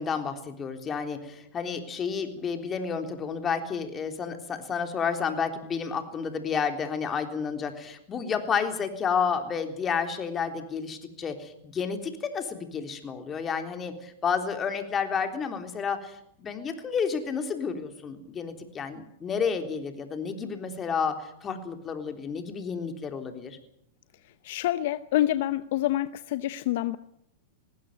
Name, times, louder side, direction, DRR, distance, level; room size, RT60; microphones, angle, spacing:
voice 1, 0.0-23.6, left 6 dB, 25° left, 6 dB, 3.6 m, -31 dB
voice 2, 24.4-27.0, left 14 dB, 60° left, 14 dB, 0.8 m, -27 dB
20.0 x 16.0 x 9.2 m, 0.74 s
hypercardioid pair, 105°, 0 cm